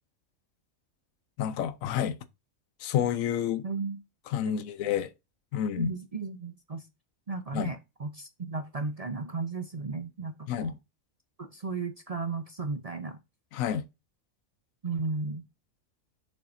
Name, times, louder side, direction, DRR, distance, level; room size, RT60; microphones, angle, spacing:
voice 1, 1.4-2.2 2.8-3.7 4.3-5.1 5.5-5.9 7.5-7.7 10.5-10.7 13.5-13.8, left 9 dB, 85° left, 1.0 m, -29 dB
voice 2, 3.6-4.0 4.5-4.6 5.5-6.8 7.3-10.7 11.4-13.2 14.8-15.4, right 4 dB, 45° right, 0.5 m, -35 dB
7.1 x 5.3 x 2.6 m
omnidirectional pair, 1.4 m